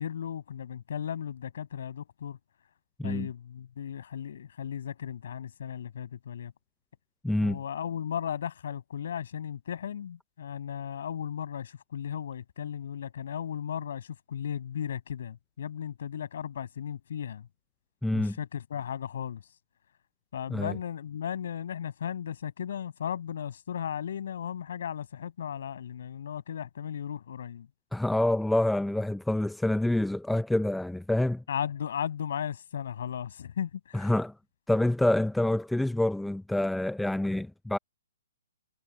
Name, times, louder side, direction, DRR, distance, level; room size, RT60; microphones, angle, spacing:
voice 1, 0.0-2.4 3.0-6.5 7.4-17.5 18.1-19.4 20.3-27.7 31.5-34.1, left 9 dB, 60° left, 6.4 m, -36 dB
voice 2, 7.2-7.6 18.0-18.4 20.5-20.8 27.9-31.4 33.9-34.3 34.7-37.8, left 1 dB, ahead, 0.5 m, -27 dB
hypercardioid pair, 155°, 0 cm